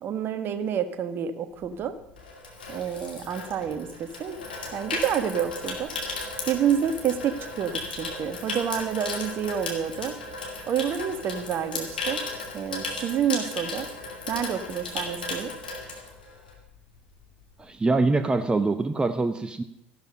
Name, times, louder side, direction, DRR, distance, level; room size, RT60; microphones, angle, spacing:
voice 1, 0.0-1.9 2.7-4.4 4.7-5.9 6.5-10.2 10.7-12.2 12.5-13.9 14.3-15.5, right 8 dB, 45° right, 11 dB, 1.3 m, -28 dB
Water tap faucet / Sink (filling or washing), 1.6-16.7 17.0-17.3, left 3 dB, 80° left, 2.4 m, -35 dB
voice 2, 17.6-19.6, right 3 dB, 20° right, 10 dB, 0.8 m, -24 dB
14.0 x 12.0 x 5.3 m, 0.84 s
figure-of-eight pair, 60°, 5 cm